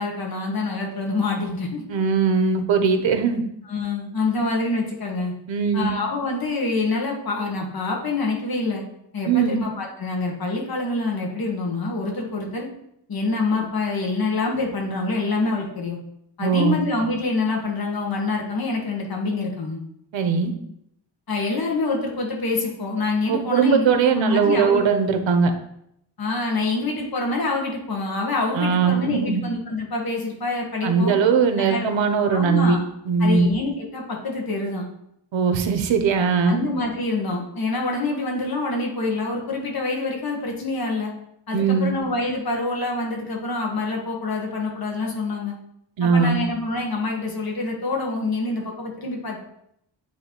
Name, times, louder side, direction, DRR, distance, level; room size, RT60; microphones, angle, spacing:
voice 1, 0.0-1.8 3.7-5.3 5.7-8.8 9.1-12.7 13.1-16.0 16.4-19.8 21.3-24.8 26.2-31.2 31.6-32.0 32.3-32.8 33.2-34.8 36.4-41.1 41.5-45.6 46.0-49.4, left 3 dB, 50° left, 0 dB, 1.5 m, -26 dB
voice 2, 1.9-3.4 5.5-5.9 9.2-9.6 16.4-16.8 20.1-20.5 23.3-25.5 28.5-29.4 30.8-32.8 33.1-33.5 35.3-36.6 41.5-42.0 46.0-46.4, right 5 dB, 90° right, 7 dB, 0.9 m, -20 dB
8.8 x 3.2 x 4.4 m, 0.76 s
wide cardioid pair, 120°, 45 cm